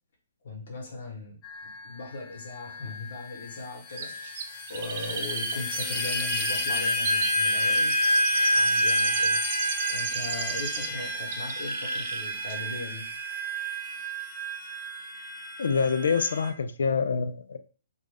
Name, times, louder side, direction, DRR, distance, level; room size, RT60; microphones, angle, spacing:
voice 1, 0.4-4.3 4.7-8.1 8.5-9.4 9.9-13.1, left 3 dB, 65° left, 1 dB, 1.0 m, -38 dB
sound 1, 1.4-16.5, equal, 15° left, 0.4 m, -29 dB
Chirp tweet, 4.0-11.0 11.3-12.2 12.5-12.6, right 5 dB, 50° right, 0.4 m, -35 dB
voice 2, 15.6-17.6, left 5 dB, 80° left, 11 dB, 0.3 m, -26 dB
2.5 x 2.2 x 3.3 m, 0.39 s
hypercardioid pair, 160°, 0 cm